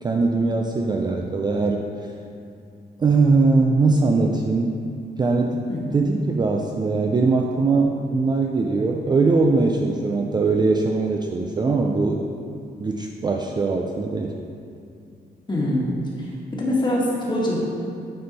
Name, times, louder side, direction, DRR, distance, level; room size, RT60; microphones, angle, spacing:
voice 1, 0.0-1.9 3.0-4.7 5.2-5.6 5.9-12.2 12.8-14.4, right 3 dB, 25° right, 1 dB, 0.3 m, -21 dB
voice 2, 15.5-16.3 16.6-17.6, left 1 dB, 25° left, -4 dB, 1.4 m, -23 dB
9.5 x 4.4 x 4.0 m, 2.5 s
wide cardioid pair, 155°, 18 cm